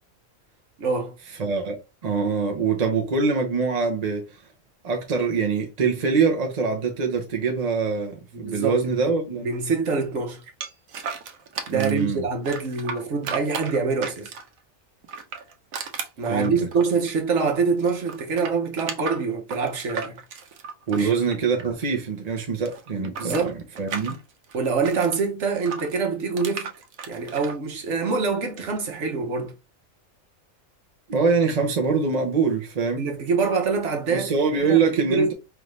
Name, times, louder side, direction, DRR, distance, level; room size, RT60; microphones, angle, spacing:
voice 1, 0.8-1.1 8.3-9.0 9.4-10.4 11.7-14.3 16.2-20.2 21.0-21.1 23.0-23.5 24.5-26.7 27.1-29.5 33.0-34.3 34.6-35.3, right 4 dB, 65° right, 1.3 m, -25 dB
voice 2, 1.4-4.2 4.8-9.5 11.7-12.3 16.3-16.7 20.9-24.2 31.1-33.0 34.1-35.3, right 5 dB, 40° right, 0.7 m, -24 dB
sound 1, 10.6-12.0 12.4-14.6 15.0-17.6 17.8-22.0 22.3-25.2 25.7-27.6, right 5 dB, 85° right, 1.2 m, -35 dB
4.6 x 2.6 x 3.2 m
omnidirectional pair, 1.4 m